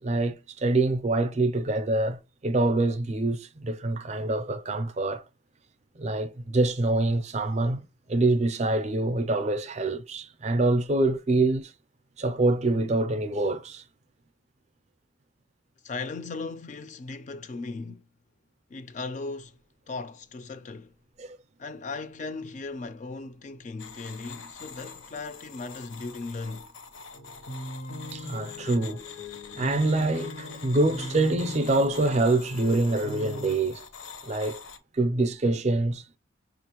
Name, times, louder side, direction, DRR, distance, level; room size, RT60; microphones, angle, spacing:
voice 1, 0.0-5.2 6.0-7.8 8.1-11.7 12.2-13.8 21.2-21.4 28.1-29.0 29.5-33.8 34.2-34.6 34.9-36.0, right 2 dB, 35° right, 0.4 m, -25 dB
voice 2, 15.8-18.1 18.7-19.6 19.9-20.9 21.6-26.7, left 3 dB, 35° left, 0.3 m, -37 dB
sound 1, 23.8-34.8, left 5 dB, 70° left, 0.7 m, -45 dB
sound 2, 27.1-33.6, left 1 dB, 90° left, 0.9 m, -40 dB
5.9 x 2.4 x 2.9 m
head